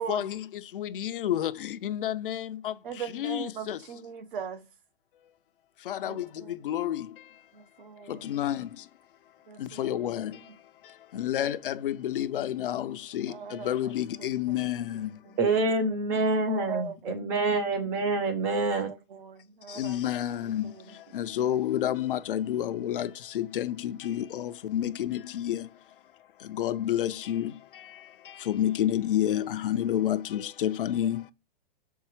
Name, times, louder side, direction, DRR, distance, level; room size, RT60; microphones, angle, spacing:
voice 1, 0.0-4.0 5.8-7.5 8.0-8.9 9.5-15.4 19.7-26.1 26.4-31.3, left 11 dB, 65° left, 0.7 m, -30 dB
voice 2, 2.8-4.6 6.0-6.5 7.5-8.3 9.5-9.9 13.3-13.7 14.2-14.6 16.1-17.4 19.1-20.0 20.6-20.7, right 7 dB, 60° right, 1.3 m, -39 dB
voice 3, 15.4-18.9, right 2 dB, 10° right, 0.4 m, -26 dB
6.7 x 4.6 x 4.5 m
hypercardioid pair, 175°, 29 cm